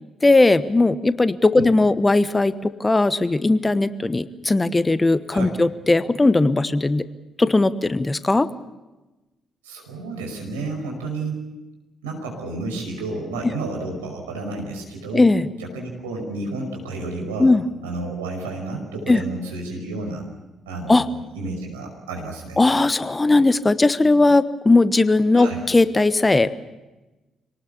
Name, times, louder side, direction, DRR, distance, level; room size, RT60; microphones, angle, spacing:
voice 1, 0.2-7.0 7.4-8.5 15.1-15.5 17.4-17.6 19.1-19.2 20.9-21.1 22.6-26.5, left 2 dB, 25° left, 14 dB, 1.2 m, -18 dB
voice 2, 9.6-11.4 12.0-15.2 15.6-17.5 17.8-20.3 20.7-22.6 25.3-25.6, right 2 dB, 85° right, 1 dB, 5.4 m, -31 dB
26.5 x 19.0 x 7.2 m, 1.1 s
hypercardioid pair, 45°, 0 cm